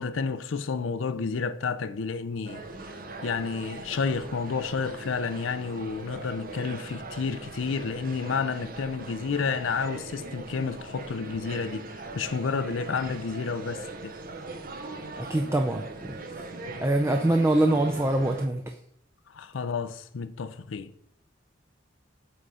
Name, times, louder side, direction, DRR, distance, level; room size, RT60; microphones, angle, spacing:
voice 1, 0.0-11.9 12.1-14.1 19.3-20.9, left 5 dB, 85° left, 0.5 m, -30 dB
sound 1, 2.4-18.5, right 2 dB, 50° right, 0.7 m, -40 dB
voice 2, 15.2-16.2 16.8-18.7, right 1 dB, 15° right, 0.4 m, -24 dB
7.8 x 3.7 x 5.5 m
head